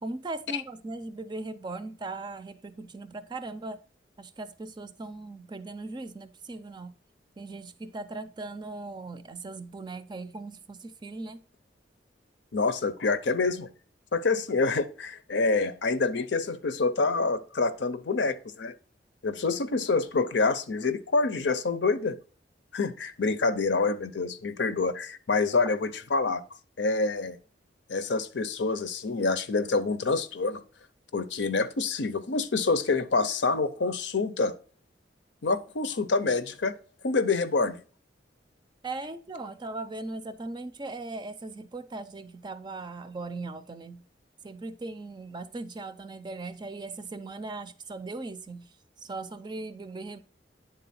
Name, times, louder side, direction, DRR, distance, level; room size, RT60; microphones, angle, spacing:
voice 1, 0.0-3.8 4.2-6.9 7.4-11.4 38.8-44.0 44.4-48.7 49.0-50.2, right 2 dB, 25° right, 0.5 m, -39 dB
voice 2, 12.5-13.7 14.1-18.7 19.2-22.2 22.7-26.4 26.8-27.4 27.9-30.6 31.1-34.5 35.4-36.7 37.0-37.8, left 3 dB, 75° left, 0.6 m, -27 dB
9.5 x 3.9 x 4.2 m
head